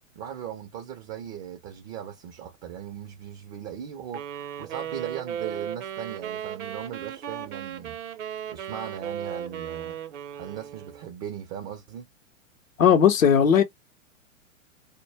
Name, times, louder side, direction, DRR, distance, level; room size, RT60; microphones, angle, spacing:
voice 1, 0.2-8.0 8.5-10.0 10.4-12.1, right 9 dB, 25° right, 0.4 m, -38 dB
sound 1, 4.1-11.1, right 9 dB, 65° right, 0.7 m, -36 dB
voice 2, 12.8-13.6, left 8 dB, 80° left, 0.6 m, -17 dB
2.1 x 2.0 x 3.3 m
figure-of-eight pair, 105°, 39 cm